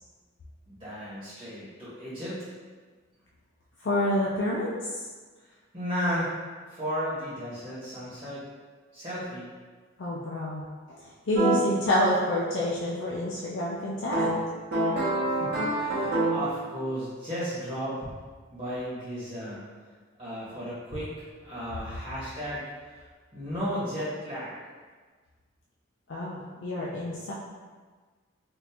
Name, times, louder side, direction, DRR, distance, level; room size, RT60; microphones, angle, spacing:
voice 1, 0.7-2.4 5.7-6.3 6.7-8.4 8.9-9.4 15.2-18.1 18.5-19.6 20.2-22.6 22.9-23.0 23.3-24.5, equal, 25° right, -12 dB, 1.2 m, -34 dB
voice 2, 3.8-4.8 10.0-11.0 11.3-14.3 26.1-27.3, left 1 dB, 60° left, -6 dB, 0.4 m, -28 dB
sound 1, 11.3-11.6 14.1-16.5, right 1 dB, 50° right, 1.0 m, -26 dB
3.6 x 2.5 x 2.8 m, 1.4 s
head